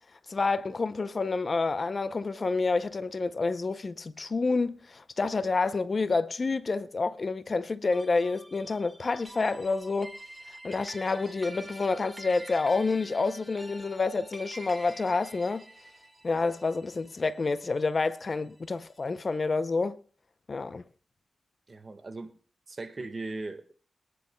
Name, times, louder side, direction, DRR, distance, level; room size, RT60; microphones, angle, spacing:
voice 1, 0.3-10.1 10.6-15.6 16.2-20.0 20.5-20.8, left 3 dB, 45° left, 0.6 m, -28 dB
sound 1, 7.9-18.5, right 1 dB, 20° right, 1.5 m, -47 dB
voice 2, 21.7-22.3 22.7-23.7, right 2 dB, 40° right, 1.5 m, -38 dB
23.5 x 10.0 x 2.2 m
cardioid pair, 75°, 0 cm